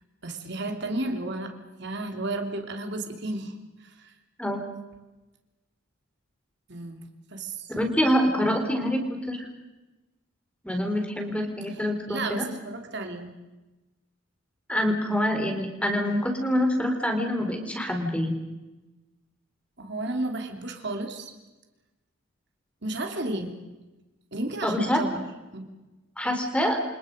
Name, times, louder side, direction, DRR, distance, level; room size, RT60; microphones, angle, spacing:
voice 1, 0.2-4.1 6.7-7.0 7.3-7.7 11.7-13.3 15.9-16.0 19.8-21.3 22.8-23.5 24.3-25.2 25.5-25.7, right 2 dB, 55° right, 4 dB, 3.2 m, -33 dB
voice 2, 7.7-9.5 10.6-12.4 14.7-18.4 24.6-25.0 26.2-26.8, equal, 5° left, 4 dB, 3.8 m, -26 dB
28.5 x 27.5 x 5.3 m, 1.1 s
head